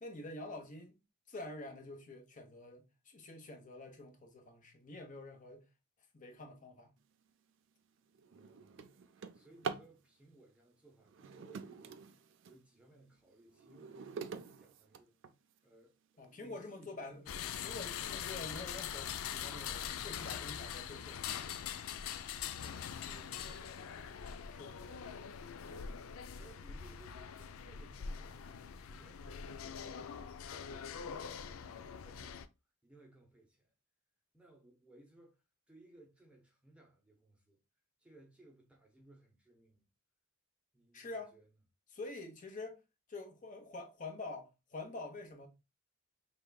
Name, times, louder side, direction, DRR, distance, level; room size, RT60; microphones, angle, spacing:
voice 1, 0.0-1.0 1.3-5.6 6.1-6.9 16.2-17.2 17.6-21.2 24.5-24.8 40.9-41.3 41.9-42.8 43.1-45.5, left 2 dB, 35° left, 1.0 m, -47 dB
Drawer open or close, 7.3-7.5 8.0-10.0 11.0-12.6 13.1-15.6 16.2-16.3 16.8-16.9 17.3-17.7, right 5 dB, 60° right, 0.4 m, -46 dB
voice 2, 8.3-12.0 12.4-15.1 15.6-17.7 22.6-24.0 24.8-26.0 26.3-32.5 32.8-33.7 34.3-37.6 38.0-39.9 40.7-41.5, right 2 dB, 5° right, 0.7 m, -62 dB
sound 1, 17.3-32.5, left 8 dB, 75° left, 0.4 m, -43 dB
5.4 x 3.4 x 2.2 m
head